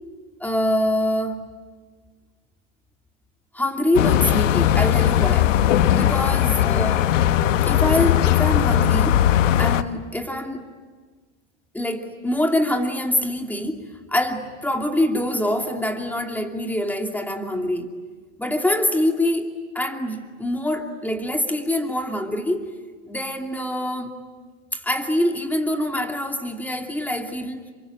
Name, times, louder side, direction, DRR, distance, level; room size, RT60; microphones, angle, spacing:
voice 1, 0.4-1.4 3.5-5.5 5.9-7.1 7.6-9.2 9.6-10.6 11.7-17.9 18.4-22.7 23.0-24.1 24.7-27.6, left 1 dB, 5° left, 4 dB, 2.6 m, -25 dB
sound 1, 3.9-9.8, left 11 dB, 80° left, 1.2 m, -18 dB
27.5 x 24.0 x 8.9 m, 1.5 s
hypercardioid pair, 115°, 37 cm